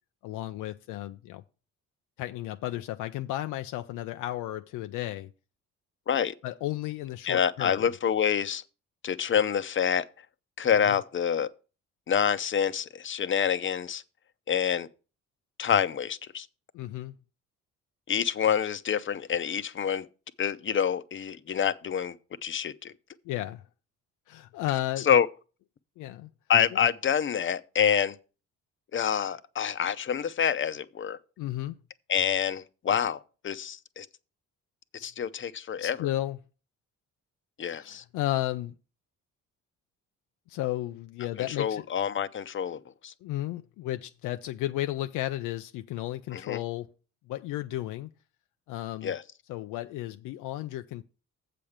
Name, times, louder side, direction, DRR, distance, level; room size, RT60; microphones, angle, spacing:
voice 1, 0.2-1.4 2.2-5.3 6.4-7.8 16.7-17.1 23.3-23.6 24.3-25.1 26.0-26.3 26.7-26.8 31.4-31.8 35.0-35.1 35.8-36.4 37.7-38.7 40.5-41.8 43.2-46.9 47.3-48.1 48.7-49.1 49.5-51.0, left 15 dB, 90° left, 0.5 m, -33 dB
voice 2, 7.2-8.6 9.0-10.1 10.6-11.5 12.1-14.0 14.5-14.9 15.6-16.5 18.1-20.1 20.4-22.2 22.4-22.9 25.0-25.3 26.5-28.2 28.9-31.2 32.1-34.1 35.0-36.1 37.6-38.0 41.4-43.1 46.3-46.6 49.0-49.2, left 8 dB, 40° left, 0.7 m, -27 dB
7.6 x 5.1 x 7.2 m
cardioid pair, 90°, 30 cm